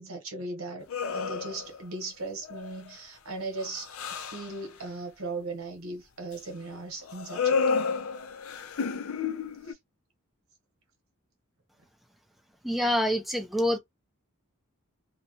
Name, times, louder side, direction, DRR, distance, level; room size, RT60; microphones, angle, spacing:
voice 1, 0.0-7.7 9.7-9.8, right 2 dB, 75° right, 1.0 m, -38 dB
sound 1, 0.9-1.8 2.4-2.9 3.3-4.6 7.1-9.7, left 5 dB, 75° left, 0.5 m, -31 dB
voice 2, 12.6-13.8, equal, ahead, 0.5 m, -26 dB
2.8 x 2.1 x 2.7 m
head